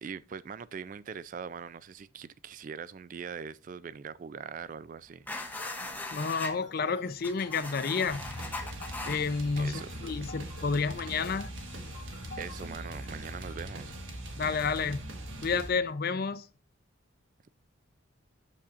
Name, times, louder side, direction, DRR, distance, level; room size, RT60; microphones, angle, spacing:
voice 1, 0.0-5.3 9.6-9.9 12.4-14.0, right 6 dB, 40° right, 0.3 m, -41 dB
sound 1, 5.3-6.5 7.2-9.2, left 2 dB, 10° left, 0.8 m, -39 dB
sound 2, 5.6-13.5, left 4 dB, 65° left, 1.2 m, -51 dB
voice 2, 6.1-8.3 9.0-11.5 14.4-15.1 15.4-16.5, left 5 dB, 50° left, 0.5 m, -30 dB
sound 3, 8.1-15.7, right 1 dB, 75° right, 1.3 m, -41 dB
8.2 x 6.8 x 2.5 m
head